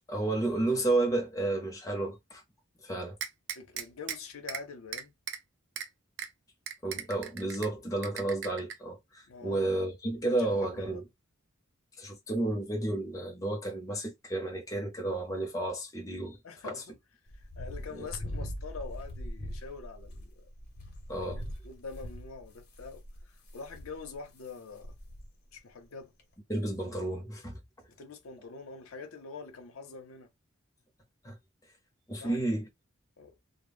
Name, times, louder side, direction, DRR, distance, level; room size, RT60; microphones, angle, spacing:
voice 1, 0.1-2.4 2.8-3.2 6.8-11.0 12.0-16.4 16.6-16.8 17.9-18.1 21.1-21.4 26.5-27.6 31.2-31.4 32.1-32.7, right 2 dB, 15° left, 0.6 m, -32 dB
sound 1, 3.2-4.2 4.5-4.6 4.9-5.4 5.8-5.9 6.2-6.3 6.7-7.7 8.0-8.7, right 9 dB, 55° right, 0.4 m, -37 dB
voice 2, 3.6-5.1 9.3-9.8 10.3-11.0 16.4-16.8 17.3-20.5 21.2-25.0 25.5-26.1 28.0-30.3 32.2-32.4 33.2-33.3, left 4 dB, 85° left, 0.7 m, -45 dB
sound 2, 17.3-24.5 24.8-25.3 25.6-25.7 26.2-26.3, equal, 50° left, 0.7 m, -42 dB
2.1 x 2.0 x 3.3 m
head